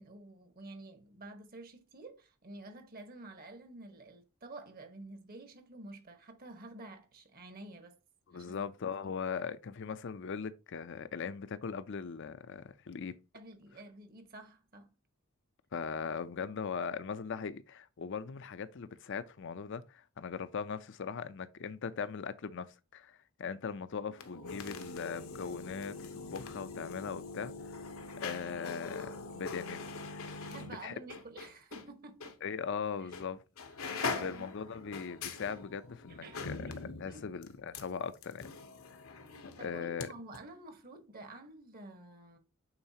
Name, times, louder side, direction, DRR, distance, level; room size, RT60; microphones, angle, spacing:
voice 1, 0.0-7.9 8.3-9.0 13.3-14.9 30.5-32.3 33.0-33.1 34.0-34.6 36.1-36.8 37.1-37.2 39.6-42.4, right 2 dB, 45° right, 1.3 m, -50 dB
voice 2, 8.3-13.2 15.7-27.8 28.2-29.8 30.1-30.4 30.7-31.0 32.4-33.4 34.2-38.5 38.9-39.0 39.6-40.1, left 6 dB, 60° left, 0.5 m, -40 dB
sound 1, 24.1-31.9 32.2-32.3 33.1-33.3 33.6-40.1 40.3-40.4, left 4 dB, 80° left, 0.9 m, -42 dB
8.8 x 3.9 x 2.8 m
head